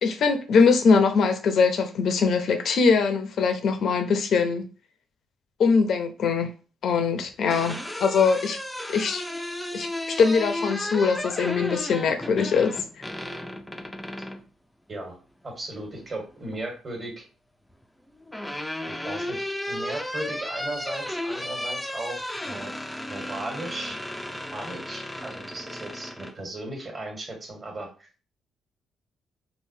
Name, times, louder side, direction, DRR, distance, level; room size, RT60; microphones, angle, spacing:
voice 1, 0.0-4.6 5.6-6.5 6.8-8.6 8.9-9.2 9.7-12.8, left 5 dB, 65° left, 0.6 m, -22 dB
sound 1, 7.2-14.4 15.9-16.6 17.8-26.3, left 1 dB, 5° left, 0.4 m, -34 dB
voice 2, 15.4-17.2 18.9-22.7 23.0-24.0 24.5-28.1, right 2 dB, 35° right, 1.4 m, -36 dB
3.8 x 2.2 x 2.7 m
cardioid pair, 90°, 0 cm